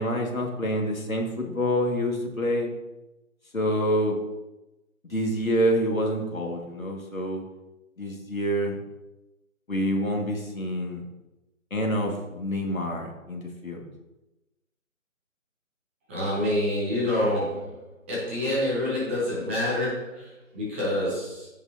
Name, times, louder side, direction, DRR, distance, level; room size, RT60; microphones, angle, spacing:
voice 1, 0.0-2.7 3.5-4.2 5.1-7.4 8.0-8.8 9.7-11.0 11.7-13.9, equal, 80° left, 1 dB, 2.2 m, -27 dB
voice 2, 16.1-17.8 18.1-21.5, left 1 dB, 10° right, -6 dB, 1.1 m, -27 dB
15.5 x 5.4 x 2.8 m, 1.0 s
figure-of-eight pair, 155°, 40 cm